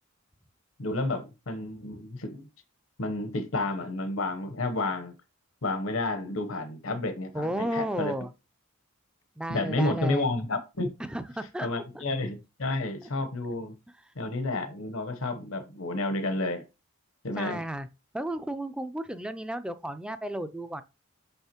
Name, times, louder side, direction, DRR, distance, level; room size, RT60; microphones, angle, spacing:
voice 1, 0.8-2.5 3.0-5.1 5.6-8.1 9.5-10.9 11.6-13.8 14.2-16.6 17.2-17.7, left 2 dB, 70° left, 1.0 m, -31 dB
voice 2, 7.3-8.3 9.4-10.3 11.0-11.7 11.9-12.0 13.0-13.1 17.4-17.9 18.1-20.8, right 1 dB, 5° right, 0.4 m, -33 dB
6.5 x 5.6 x 2.9 m
head